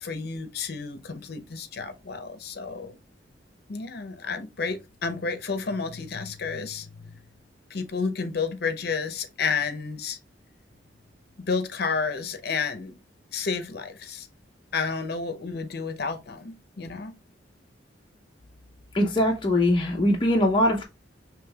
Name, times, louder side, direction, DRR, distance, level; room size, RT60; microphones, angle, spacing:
voice 1, 0.0-3.0 3.7-7.1 7.7-10.2 11.5-13.0 13.3-14.3 14.7-17.1, left 5 dB, 60° left, 0.7 m, -31 dB
voice 2, 18.9-20.8, left 1 dB, 30° left, 0.7 m, -22 dB
5.1 x 3.1 x 2.3 m
head